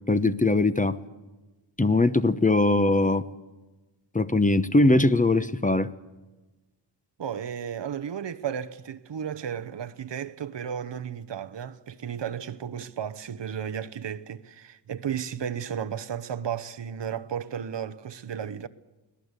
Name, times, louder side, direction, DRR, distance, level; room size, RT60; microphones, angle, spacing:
voice 1, 0.1-1.0 1.8-3.2 4.1-5.9, left 2 dB, 15° left, 0.9 m, -21 dB
voice 2, 7.2-18.7, right 8 dB, 65° right, 1.0 m, -34 dB
24.0 x 17.5 x 8.2 m
cardioid pair, 80°, 46 cm